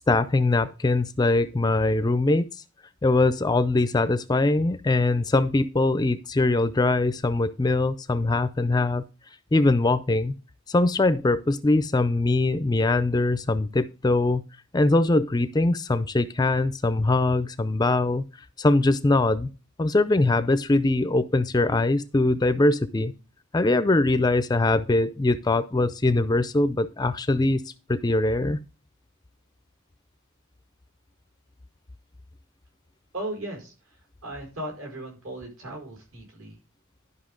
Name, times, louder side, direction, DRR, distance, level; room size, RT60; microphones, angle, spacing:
voice 1, 0.1-2.5 3.0-9.0 9.5-10.3 10.7-14.4 14.7-18.2 18.6-19.5 19.8-23.1 23.5-27.6 27.9-28.6, left 2 dB, 20° left, 13 dB, 0.4 m, -22 dB
voice 2, 33.1-36.6, right 1 dB, 75° right, 2 dB, 4.8 m, -37 dB
11.5 x 5.5 x 3.7 m, 0.33 s
head